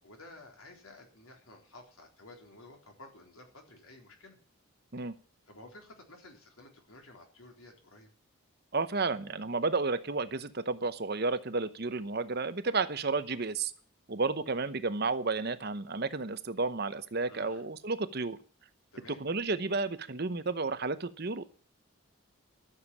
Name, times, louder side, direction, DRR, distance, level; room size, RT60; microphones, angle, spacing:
voice 1, 0.0-4.4 5.5-8.1 17.3-17.6 18.9-19.2, left 2 dB, 75° left, 2 dB, 3.9 m, -53 dB
voice 2, 8.7-13.7 14.1-18.4 19.1-21.4, right 3 dB, 45° right, 12 dB, 0.9 m, -32 dB
13.0 x 7.3 x 8.4 m, 0.41 s
head